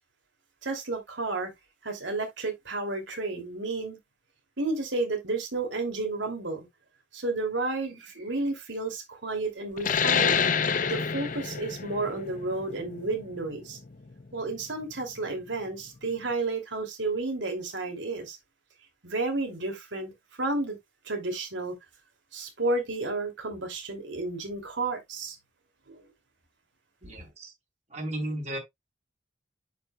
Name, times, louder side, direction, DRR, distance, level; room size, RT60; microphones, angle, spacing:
voice 1, 0.6-1.5 1.8-4.0 4.6-6.6 7.1-10.4 10.9-13.8 14.3-18.4 19.0-20.1 20.4-20.8 21.0-21.7 22.3-25.4 25.9-26.0, right 2 dB, 75° right, 2.8 m, -31 dB
sound 1, 9.8-14.9, left 6 dB, 45° left, 0.6 m, -28 dB
voice 2, 27.0-27.5 27.9-28.6, right 1 dB, 35° right, 3.7 m, -34 dB
10.5 x 5.2 x 2.3 m
head